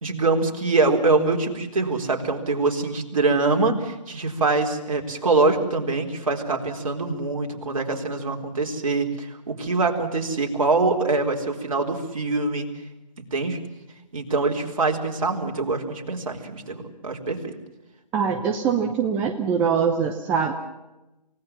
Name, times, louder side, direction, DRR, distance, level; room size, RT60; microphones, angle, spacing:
voice 1, 0.0-12.7 13.2-13.6 14.1-17.5, right 3 dB, 55° right, 3 dB, 4.2 m, -24 dB
voice 2, 18.1-20.5, right 6 dB, 5° right, 4 dB, 0.7 m, -23 dB
28.5 x 18.0 x 7.3 m, 0.97 s
figure-of-eight pair, 150°, 21 cm